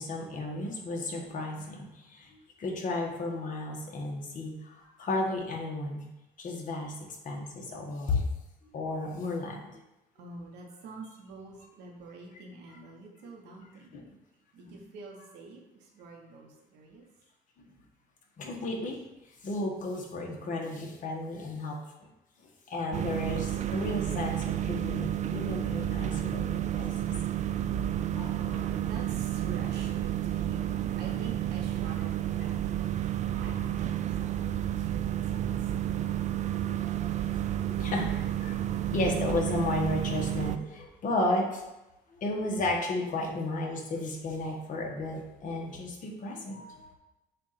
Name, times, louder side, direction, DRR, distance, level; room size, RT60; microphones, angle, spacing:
voice 1, 0.0-6.0 6.4-6.9 7.2-8.2 8.7-9.8 13.9-14.0 18.4-19.0 19.4-21.8 22.7-26.9 28.2-28.3 33.2-33.3 35.4-36.1 36.6-37.1 37.3-38.5 38.9-41.6 42.1-46.9, left 2 dB, 50° left, 0 dB, 1.3 m, -33 dB
voice 2, 10.2-14.0 14.5-17.1 28.0-36.3 43.3-43.4, right 3 dB, 85° right, 0 dB, 1.3 m, -47 dB
sound 1, 22.9-40.6, right 11 dB, 45° right, 0.4 m, -31 dB
7.2 x 2.6 x 5.7 m, 0.97 s
cardioid pair, 110°, 17 cm